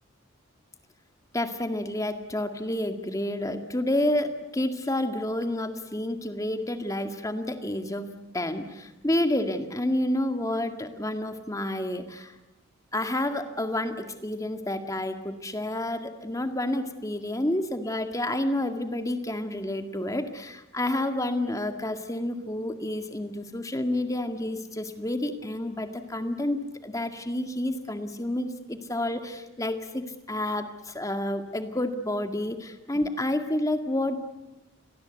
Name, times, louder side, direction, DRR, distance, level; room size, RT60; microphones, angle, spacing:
voice 1, 1.3-8.1 8.3-12.3 12.9-34.2, left 1 dB, 15° left, 7 dB, 1.9 m, -29 dB
29.5 x 21.5 x 8.1 m, 1.0 s
head